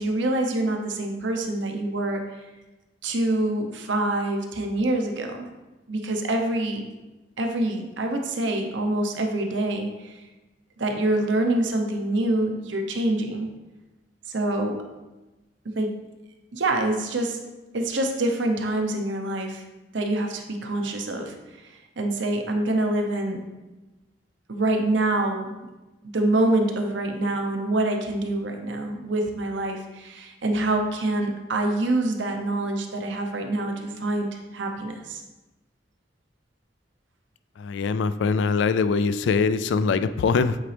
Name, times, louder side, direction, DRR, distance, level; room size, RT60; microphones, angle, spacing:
voice 1, 0.0-2.2 3.0-5.5 5.9-6.8 7.4-10.2 10.8-13.5 14.3-14.8 15.7-16.0 16.5-17.4 17.7-19.6 19.9-21.3 22.0-23.4 24.5-25.5 26.0-35.2, right 2 dB, 80° right, 4 dB, 0.8 m, -26 dB
voice 2, 37.6-40.6, left 5 dB, 75° left, 13 dB, 0.3 m, -23 dB
8.1 x 4.0 x 3.3 m, 1.1 s
head